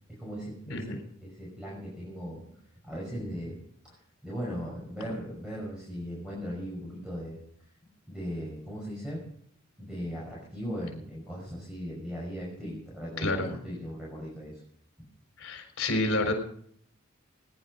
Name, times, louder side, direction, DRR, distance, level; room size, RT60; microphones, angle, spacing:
voice 1, 0.1-2.4 2.8-3.6 3.8-4.0 4.2-7.7 8.1-9.2 9.8-14.6, equal, 5° right, -5 dB, 5.7 m, -38 dB
voice 2, 13.2-13.6 15.4-16.3, left 2 dB, 75° left, 4 dB, 4.1 m, -29 dB
21.0 x 11.0 x 5.4 m, 0.65 s
head